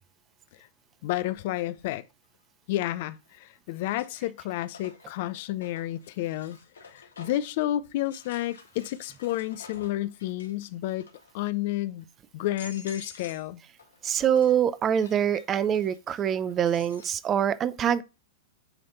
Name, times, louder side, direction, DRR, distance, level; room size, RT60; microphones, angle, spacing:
voice 1, 1.0-2.0 2.7-6.6 6.9-11.1 11.3-12.0 12.3-13.6, left 14 dB, 55° left, 0.6 m, -31 dB
sound 1, 3.0-3.4 3.8-7.5 8.0-10.6 10.9-11.4 12.0-12.1 12.4-13.5 13.8-17.1, left 4 dB, 80° left, 1.8 m, -50 dB
voice 2, 14.0-18.0, right 9 dB, 30° right, 0.6 m, -24 dB
8.9 x 3.4 x 4.0 m
hypercardioid pair, 105°, 0 cm